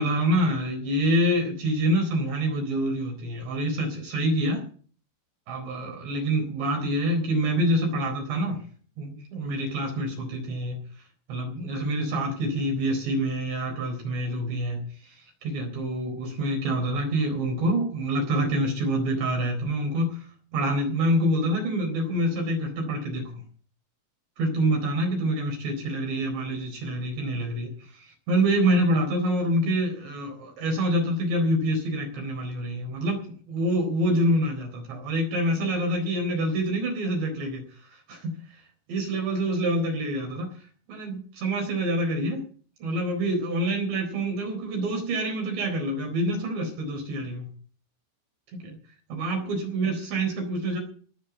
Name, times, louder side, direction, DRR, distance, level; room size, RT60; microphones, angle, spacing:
voice 1, 0.0-4.6 5.5-8.7 9.0-10.8 11.3-14.8 15.4-20.2 20.5-23.3 24.4-33.2 33.5-37.6 38.1-38.3 38.9-40.5 40.9-42.4 42.8-47.5 48.5-48.6 49.1-50.8, right 1 dB, 70° right, 2 dB, 6.3 m, -26 dB
18.0 x 7.8 x 8.2 m, 0.43 s
omnidirectional pair, 5.2 m